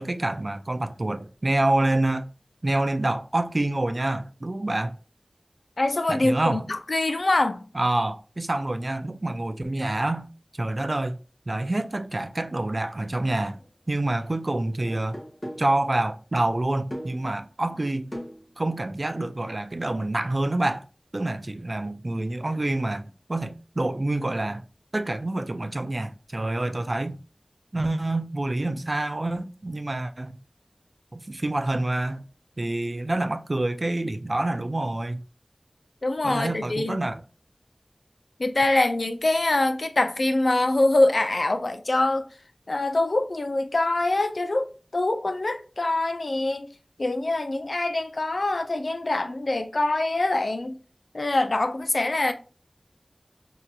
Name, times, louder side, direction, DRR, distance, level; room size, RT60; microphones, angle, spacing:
voice 1, 0.0-2.3 2.6-5.0 6.1-6.6 7.7-10.3 10.5-11.2 11.5-13.6 13.9-15.2 15.6-18.1 18.6-20.8 21.1-24.6 24.9-27.2 27.7-30.4 31.1-32.2 32.6-35.2 36.2-37.2, right 2 dB, 55° right, 0.4 m, -27 dB
voice 2, 5.8-7.6 36.0-37.0 38.4-42.3 42.7-46.7 47.0-50.8 51.1-52.3, left 2 dB, 85° left, 0.5 m, -24 dB
sound 1, 13.5-13.7 14.6-15.8 16.9-17.3 18.1-19.4, equal, 30° left, 1.7 m, -40 dB
4.0 x 2.9 x 2.3 m
wide cardioid pair, 45°, 0 cm